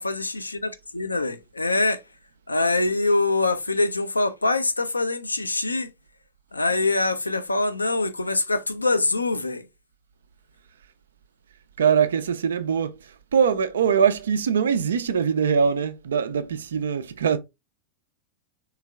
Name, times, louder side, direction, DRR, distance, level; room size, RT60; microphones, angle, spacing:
voice 1, 0.0-2.0 2.5-5.9 6.5-9.7, left 2 dB, 80° left, 0.5 m, -24 dB
voice 2, 11.8-17.4, right 7 dB, 65° right, 0.4 m, -22 dB
3.5 x 3.1 x 3.5 m
figure-of-eight pair, 90°, 0 cm